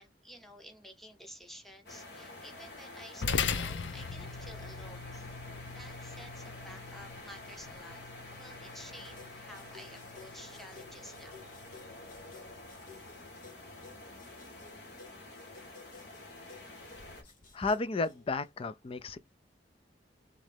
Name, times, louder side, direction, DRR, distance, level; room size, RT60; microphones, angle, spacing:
voice 1, 0.0-5.3 5.7-8.0 8.3-11.5, equal, ahead, 0.9 m, -52 dB
sound 1, 1.9-17.2, left 2 dB, 65° left, 1.6 m, -49 dB
sound 2, 3.2-11.9, left 5 dB, 90° left, 0.6 m, -40 dB
sound 3, 9.2-18.5, left 5 dB, 50° left, 0.9 m, -56 dB
voice 2, 17.5-19.2, left 3 dB, 30° left, 0.4 m, -32 dB
3.7 x 3.2 x 3.3 m
head